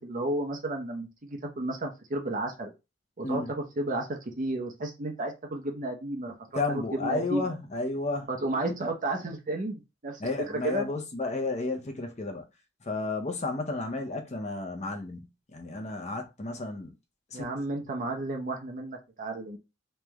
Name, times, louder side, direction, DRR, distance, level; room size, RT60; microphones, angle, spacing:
voice 1, 0.0-2.7 3.2-7.5 8.3-10.2 10.5-10.9 17.3-19.6, right 2 dB, 40° right, 0.7 m, -32 dB
voice 2, 6.5-8.3 10.2-12.4 12.8-16.9 17.3-17.5, left 3 dB, 35° left, 0.8 m, -32 dB
3.2 x 3.2 x 3.5 m
head